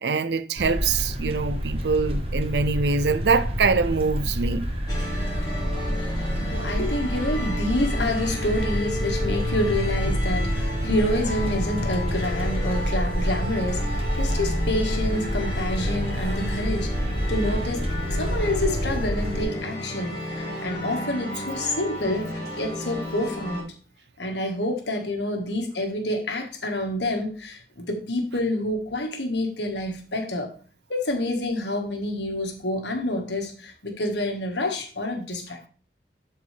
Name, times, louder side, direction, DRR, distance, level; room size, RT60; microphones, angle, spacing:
voice 1, 0.0-4.6, right 4 dB, 70° right, 0.5 m, -24 dB
sound 1, 0.6-19.4, equal, 35° right, 1.3 m, -27 dB
sound 2, 4.9-23.6, left 1 dB, 20° left, 3.2 m, -33 dB
voice 2, 6.4-23.7 24.2-30.5 30.9-35.7, left 1 dB, 75° left, 1.6 m, -28 dB
12.0 x 4.6 x 3.3 m
head